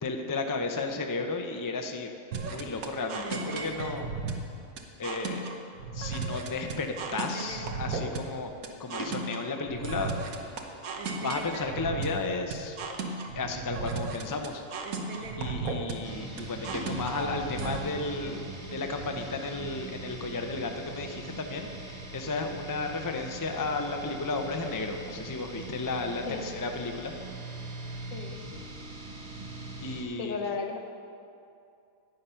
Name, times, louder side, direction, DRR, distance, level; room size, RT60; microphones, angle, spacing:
voice 1, 0.0-2.1 2.4-4.1 5.0-5.5 5.9-8.5 8.8-10.2 11.2-12.8 13.4-14.6 15.4-27.1 29.8-30.4, left 3 dB, 30° left, 4 dB, 0.3 m, -33 dB
sound 1, 2.3-17.8, right 3 dB, 80° right, 1.4 m, -35 dB
sound 2, 16.0-30.0, right 2 dB, 30° right, 1.0 m, -41 dB
voice 2, 30.2-30.8, left 4 dB, 70° left, 4 dB, 1.3 m, -34 dB
10.5 x 9.2 x 5.6 m, 2.6 s
omnidirectional pair, 1.5 m